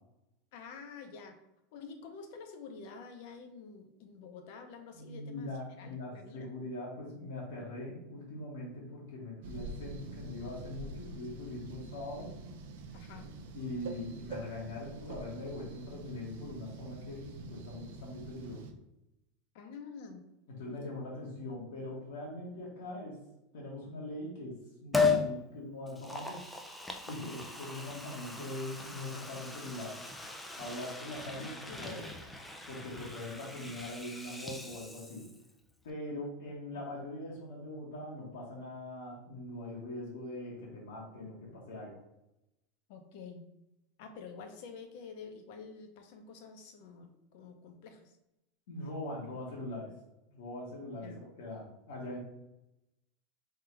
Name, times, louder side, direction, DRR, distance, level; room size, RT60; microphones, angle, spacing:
voice 1, 0.5-1.4 1.7-6.5 12.9-13.4 19.5-20.2 20.7-20.9 27.9-28.0 31.3-32.2 42.9-43.4 44.0-48.1 51.0-51.2, left 5 dB, 55° left, 6 dB, 0.7 m, -48 dB
voice 2, 4.9-12.3 13.5-18.7 20.6-23.2 23.5-26.4 27.1-30.0 30.6-32.1 32.7-35.3 35.8-42.0 48.7-49.9 50.3-52.2, left 1 dB, 90° left, -5 dB, 1.3 m, -42 dB
sound 1, 9.4-18.7, right 3 dB, 80° right, 0.5 m, -46 dB
Liquid, 24.9-25.3 25.9-35.5 35.8-35.9, left 4 dB, 5° left, 0.3 m, -36 dB
3.6 x 2.4 x 4.5 m, 0.89 s
supercardioid pair, 165°, 0 cm